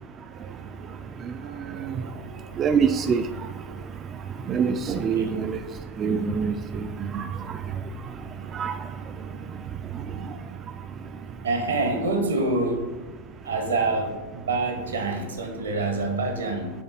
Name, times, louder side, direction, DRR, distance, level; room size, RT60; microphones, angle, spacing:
voice 1, 1.4-2.5 4.9-5.4 11.4-13.0 13.4-16.7, right 3 dB, 70° right, 4 dB, 1.0 m, -27 dB
voice 2, 2.6-3.2 4.5-5.6 6.0-6.5 7.1-7.2 8.6-8.7, right 6 dB, 25° right, 8 dB, 0.3 m, -23 dB
7.7 x 3.5 x 4.2 m, 1.2 s
figure-of-eight pair, 90°, 0 cm